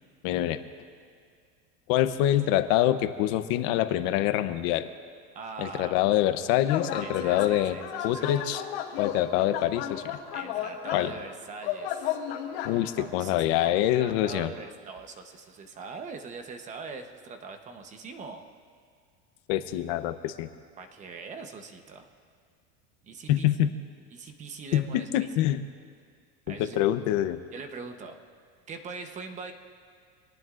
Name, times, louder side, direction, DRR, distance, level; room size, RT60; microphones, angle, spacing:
voice 1, 0.2-0.6 1.9-4.9 5.6-7.8 8.0-8.6 9.0-10.2 10.9-11.1 12.6-14.5 19.5-20.5 23.3-23.7 24.7-25.6 26.6-27.4, left 13 dB, 55° left, 10 dB, 0.8 m, -25 dB
voice 2, 5.3-6.1 7.0-8.3 10.3-12.2 13.0-18.4 20.8-22.1 23.0-23.5 24.1-25.5 26.5-26.8 27.5-28.2 28.7-29.5, right 4 dB, 20° right, 6 dB, 0.9 m, -42 dB
sound 1, 6.7-7.5 7.8-11.1 11.6-12.8, left 10 dB, 75° left, 2.7 m, -33 dB
25.5 x 18.5 x 2.5 m, 2.1 s
cardioid pair, 170°, 33 cm